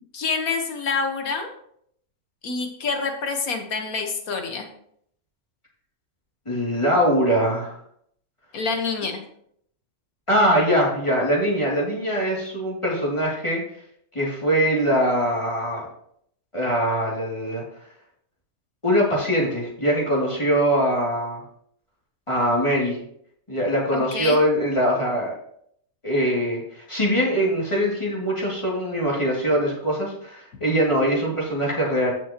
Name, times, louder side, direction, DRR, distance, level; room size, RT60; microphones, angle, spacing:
voice 1, 0.1-1.5 2.4-4.7 8.5-9.2 23.9-24.4, left 4 dB, 75° left, 5 dB, 1.7 m, -27 dB
voice 2, 6.5-7.8 10.3-13.6 14.1-15.9 16.5-17.6 18.8-21.4 22.3-23.0 23.5-25.3 26.0-32.1, equal, 20° left, -4 dB, 2.7 m, -22 dB
14.5 x 6.2 x 2.9 m, 0.69 s
omnidirectional pair, 1.5 m